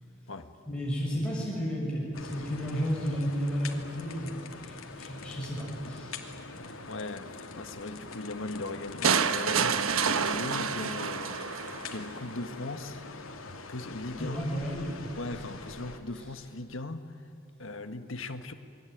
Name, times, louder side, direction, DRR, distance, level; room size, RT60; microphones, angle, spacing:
voice 1, 0.7-6.3 14.2-15.0 15.3-15.5 16.1-16.2, equal, 5° left, -6 dB, 6.7 m, -33 dB
sound 1, 2.1-16.0, left 3 dB, 90° left, 2.6 m, -44 dB
voice 2, 6.6-11.3 11.8-13.0 13.7-14.6 15.2-17.3 17.6-18.5, left 2 dB, 70° left, 8 dB, 1.7 m, -39 dB
sound 2, 9.0-12.0, right 6 dB, 80° right, 1.2 m, -28 dB
28.5 x 22.0 x 9.4 m, 2.6 s
head